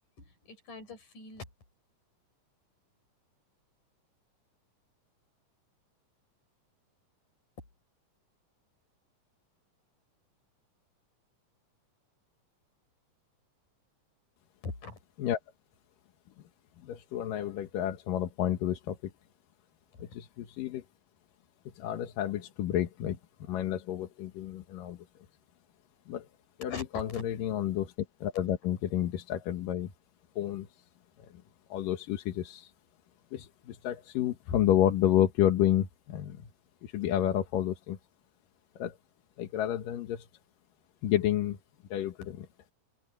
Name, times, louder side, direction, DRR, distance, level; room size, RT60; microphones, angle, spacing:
voice 1, 0.2-1.5 14.6-15.0 19.9-20.0 26.7-27.2 28.3-28.4, left 3 dB, 70° left, 7.4 m, -42 dB
voice 2, 16.8-19.1 20.0-20.8 21.8-25.0 26.1-26.3 26.6-27.9 28.2-29.9 30.4-30.7 31.3-31.4 31.7-32.7 33.3-36.4 36.8-38.0 38.8-39.0 39.4-40.3 41.0-41.6 41.9-42.5, left 11 dB, 85° left, 3.1 m, -30 dB
open air
omnidirectional pair, 3.8 m